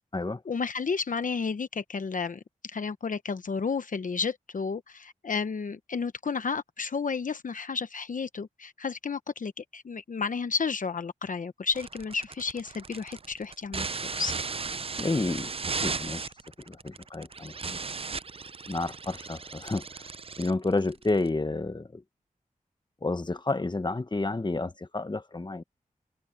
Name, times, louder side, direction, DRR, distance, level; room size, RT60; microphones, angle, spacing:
voice 1, 0.4-14.3, left 5 dB, 65° left, 0.9 m, -32 dB
sound 1, 11.7-21.3, right 4 dB, 40° right, 0.5 m, -36 dB
voice 2, 15.0-15.5 15.8-16.3 16.7-17.8 18.7-20.0 20.4-22.0 23.0-25.6, left 2 dB, 30° left, 1.4 m, -30 dB
cardioid pair, 50°, 15 cm